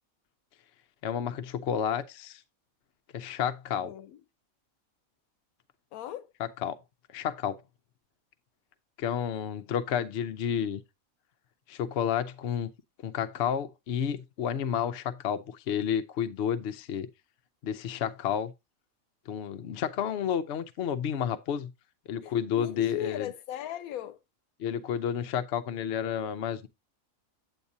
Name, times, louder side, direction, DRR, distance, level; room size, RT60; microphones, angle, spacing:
voice 1, 1.0-2.4 3.1-3.9 6.4-6.8 7.1-7.6 9.0-10.8 11.7-12.7 13.0-17.1 17.6-18.5 19.3-21.7 22.1-23.3 24.6-26.7, left 8 dB, 60° left, 0.8 m, -31 dB
voice 2, 3.8-4.2 5.9-6.3 22.2-24.2, left 12 dB, 85° left, 1.1 m, -38 dB
8.3 x 7.9 x 2.7 m
omnidirectional pair, 1.5 m